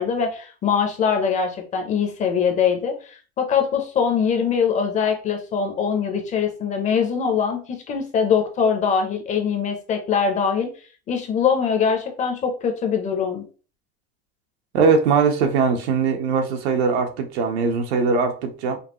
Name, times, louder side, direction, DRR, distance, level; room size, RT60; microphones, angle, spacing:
voice 1, 0.0-10.7 11.1-13.4, left 6 dB, 20° left, 0.6 m, -22 dB
voice 2, 14.7-18.8, right 5 dB, 80° right, 1.1 m, -20 dB
5.2 x 2.4 x 2.9 m
supercardioid pair, 155°, 32 cm